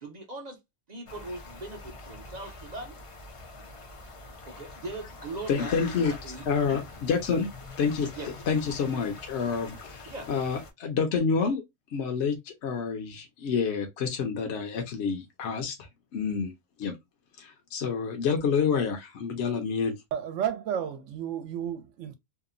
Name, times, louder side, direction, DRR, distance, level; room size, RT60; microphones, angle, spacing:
voice 1, 0.0-0.6 0.9-3.0 4.4-5.7 6.0-6.8 8.2-8.3 10.1-10.3, right 2 dB, 45° right, 0.6 m, -40 dB
sound 1, 1.1-10.7, left 3 dB, 50° left, 0.4 m, -44 dB
voice 2, 5.5-6.1 6.5-7.5 7.8-8.1 8.5-11.6 11.9-15.7 16.1-16.5 16.8-17.0 17.4-20.0, left 6 dB, 65° left, 0.9 m, -28 dB
voice 3, 20.1-22.1, right 9 dB, 80° right, 0.9 m, -32 dB
2.8 x 2.0 x 2.4 m
omnidirectional pair, 1.3 m